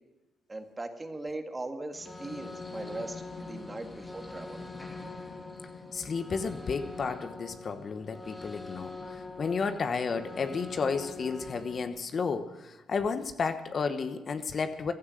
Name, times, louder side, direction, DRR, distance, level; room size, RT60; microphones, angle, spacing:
voice 1, 0.5-4.6, right 2 dB, 20° right, 6 dB, 1.8 m, -39 dB
sound 1, 1.9-11.9, left 3 dB, 20° left, 2.0 m, -43 dB
voice 2, 5.9-14.9, left 5 dB, 45° left, 9 dB, 1.1 m, -32 dB
16.0 x 11.5 x 6.4 m, 1.1 s
cardioid pair, 90°, 0 cm